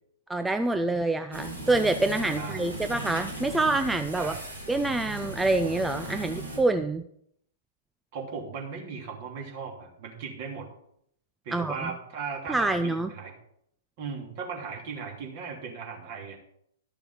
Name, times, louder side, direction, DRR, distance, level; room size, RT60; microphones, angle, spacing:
voice 1, 0.3-4.3 4.7-7.0 11.5-11.9 12.5-13.1, right 2 dB, 5° right, 8 dB, 0.5 m, -26 dB
sound 1, 1.3-6.6, right 1 dB, 85° right, 4.4 m, -38 dB
voice 2, 8.1-10.7 11.4-13.3 14.0-16.4, right 5 dB, 45° right, 1 dB, 3.0 m, -37 dB
12.0 x 6.9 x 5.7 m, 0.71 s
figure-of-eight pair, 110°, 0 cm